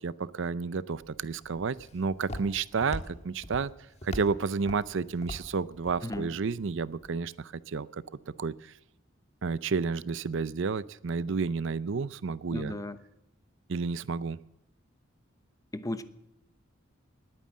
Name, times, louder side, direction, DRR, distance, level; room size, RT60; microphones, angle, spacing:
voice 1, 0.0-3.7 4.0-8.0 8.4-8.7 9.4-12.8 13.7-14.4, right 5 dB, 65° right, 18 dB, 0.5 m, -31 dB
Walk footsteps, 0.9-7.1, left 1 dB, 35° left, 1.7 m, -43 dB
voice 2, 12.5-13.0 15.7-16.0, left 1 dB, 15° left, 12 dB, 0.9 m, -35 dB
20.0 x 9.3 x 7.4 m, 0.90 s
head